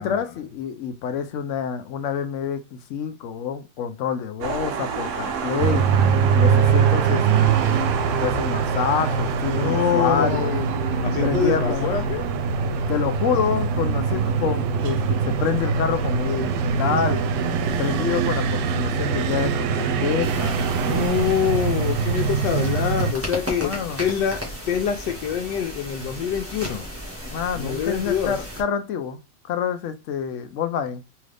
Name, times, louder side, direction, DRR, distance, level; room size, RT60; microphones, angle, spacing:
voice 1, 0.0-5.9 6.3-10.5 11.2-12.0 12.9-17.2 17.8-20.7 23.6-24.0 27.2-29.2 29.4-31.0, left 7 dB, 65° left, 0.7 m, -27 dB
sound 1, 4.4-21.1, right 6 dB, 65° right, 0.8 m, -32 dB
sound 2, 5.6-23.1, right 6 dB, 85° right, 1.2 m, -23 dB
voice 2, 9.5-12.3 20.8-24.4 24.7-26.9 27.5-28.3, left 8 dB, 90° left, 1.2 m, -25 dB
sound 3, 20.2-28.6, equal, 10° right, 1.1 m, -35 dB
3.7 x 3.0 x 3.3 m
omnidirectional pair, 1.8 m